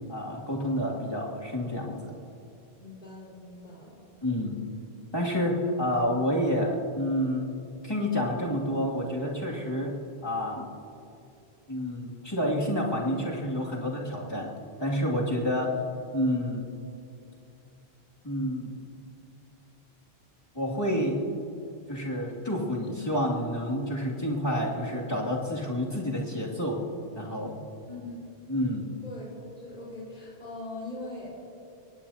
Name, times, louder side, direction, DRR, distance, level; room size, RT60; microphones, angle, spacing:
voice 1, 0.1-2.1 4.2-4.6 5.1-7.5 7.8-9.9 10.2-10.7 11.7-14.5 14.8-15.7 16.1-16.7 18.2-18.8 20.5-21.2 21.9-26.8 27.2-27.6 28.5-28.9, equal, 25° left, -4 dB, 2.7 m, -29 dB
voice 2, 2.8-4.0 27.9-28.2 29.0-31.5, left 2 dB, 50° left, -7 dB, 4.6 m, -41 dB
23.0 x 19.5 x 2.9 m, 2.7 s
omnidirectional pair, 1.0 m